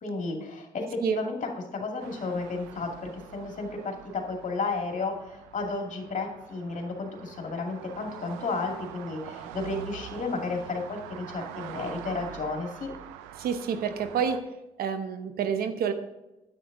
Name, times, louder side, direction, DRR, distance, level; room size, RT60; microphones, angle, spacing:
voice 1, 0.0-12.9, left 3 dB, 50° left, 2 dB, 2.3 m, -33 dB
sound 1, 2.0-14.4, right 10 dB, 90° right, 0.5 m, -45 dB
voice 2, 13.4-14.4 14.8-15.9, right 7 dB, 70° right, 9 dB, 0.9 m, -28 dB
9.4 x 8.3 x 3.9 m, 0.96 s
hypercardioid pair, 50°, 16 cm